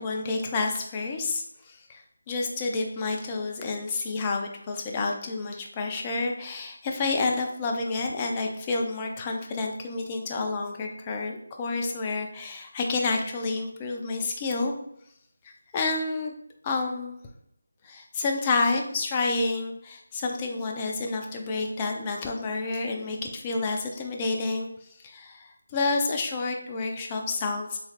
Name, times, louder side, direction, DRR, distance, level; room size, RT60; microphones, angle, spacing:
voice 1, 0.0-2.0 2.3-14.8 15.4-16.3 16.6-17.2 17.8-24.7 25.0-27.8, left 3 dB, 20° left, 2 dB, 0.5 m, -29 dB
3.9 x 3.1 x 2.4 m, 0.72 s
figure-of-eight pair, 160°, 0 cm